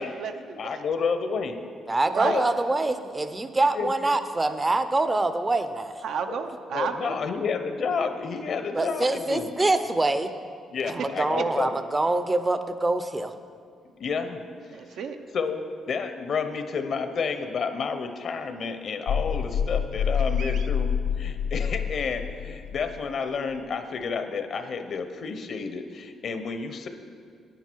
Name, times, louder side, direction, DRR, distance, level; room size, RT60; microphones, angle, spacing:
voice 1, 0.0-0.8 2.1-2.4 6.0-7.2 14.7-15.2 20.4-20.7, right 6 dB, 75° right, 6 dB, 0.7 m, -32 dB
voice 2, 0.6-1.6 2.2-2.5 3.7-3.9 6.3-6.4 6.7-9.5 10.7-11.7 14.0-14.4 15.3-20.9 21.2-26.9, left 5 dB, 55° left, 8 dB, 0.8 m, -30 dB
voice 3, 1.9-6.0 8.7-10.3 10.9-13.4, right 2 dB, 20° right, 11 dB, 0.6 m, -25 dB
sound 1, 19.1-23.1, left 7 dB, 80° left, 0.4 m, -27 dB
10.5 x 9.1 x 4.6 m, 2.2 s
cardioid pair, 90°, 0 cm